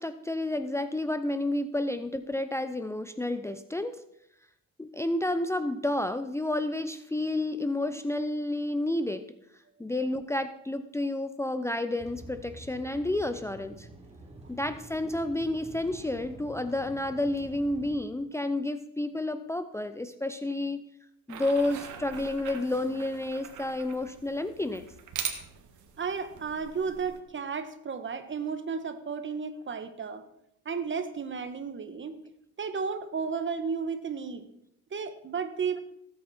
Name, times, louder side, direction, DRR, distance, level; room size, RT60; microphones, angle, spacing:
voice 1, 0.0-4.0 4.8-9.2 9.8-13.9 14.5-20.9 21.3-24.9, left 1 dB, 10° left, 9 dB, 0.6 m, -30 dB
sound 1, 12.0-18.0, right 2 dB, 20° right, 3.4 m, -48 dB
sound 2, 21.3-27.2, right 7 dB, 75° right, 1.9 m, -42 dB
voice 2, 26.0-30.2 30.6-32.2 32.6-34.5 34.9-35.8, right 5 dB, 40° right, 10 dB, 1.4 m, -33 dB
18.0 x 8.7 x 4.3 m, 0.77 s
cardioid pair, 90°, 30 cm